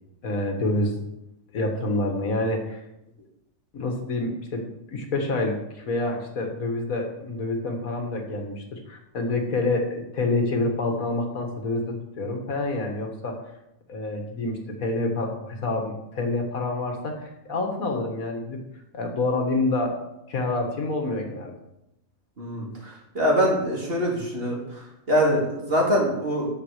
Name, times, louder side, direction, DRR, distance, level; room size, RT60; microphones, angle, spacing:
voice 1, 0.2-0.9 1.5-2.8 3.7-13.4 13.9-18.6 18.9-20.0 20.3-21.6, left 2 dB, 75° left, 3 dB, 2.0 m, -27 dB
voice 2, 23.1-24.6 25.1-26.5, equal, 40° right, -2 dB, 2.8 m, -23 dB
9.2 x 6.4 x 6.5 m, 0.86 s
omnidirectional pair, 1.5 m